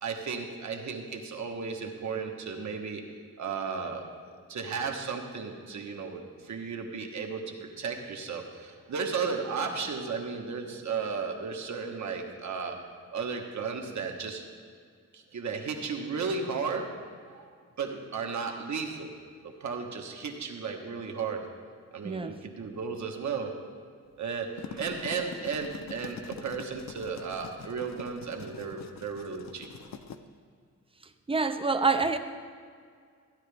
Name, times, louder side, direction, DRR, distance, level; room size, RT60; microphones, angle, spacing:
voice 1, 0.0-3.0 3.4-12.8 13.1-14.4 15.1-17.0 17.2-19.1 19.4-21.5 21.9-23.6 24.2-29.7, right 5 dB, 75° right, 3 dB, 1.2 m, -34 dB
voice 2, 22.0-22.4 31.3-32.2, right 4 dB, 20° right, 8 dB, 0.5 m, -26 dB
sound 1, 24.4-30.2, left 7 dB, 65° left, 0.6 m, -44 dB
15.0 x 10.5 x 3.4 m, 2.1 s
wide cardioid pair, 125°, 29 cm